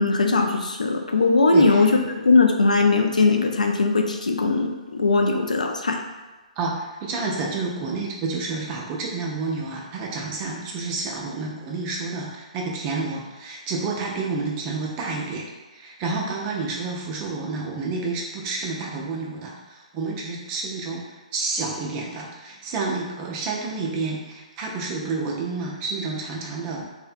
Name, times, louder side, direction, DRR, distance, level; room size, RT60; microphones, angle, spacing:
voice 1, 0.0-1.9 2.2-6.0, left 3 dB, 85° left, 3 dB, 0.3 m, -20 dB
voice 2, 1.5-1.9 6.6-26.8, right 3 dB, 30° right, -2 dB, 0.5 m, -29 dB
2.5 x 2.1 x 2.5 m, 1.2 s
figure-of-eight pair, 130°, 4 cm